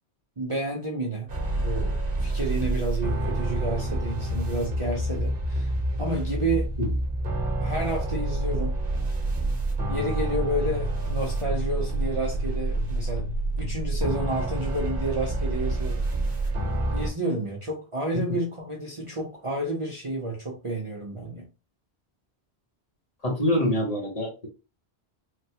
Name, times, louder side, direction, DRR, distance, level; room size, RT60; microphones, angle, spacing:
voice 1, 0.4-1.3 1.6-2.0 2.2-5.7 6.0-6.7 7.6-8.7 9.9-13.3 13.6-16.0 16.4-16.5 16.9-21.5, right 1 dB, 35° right, 0.6 m, -30 dB
sound 1, 1.3-17.1, right 1 dB, 55° right, 1.1 m, -28 dB
voice 2, 23.2-24.5, left 1 dB, 35° left, 0.9 m, -25 dB
3.3 x 2.2 x 2.7 m
omnidirectional pair, 1.1 m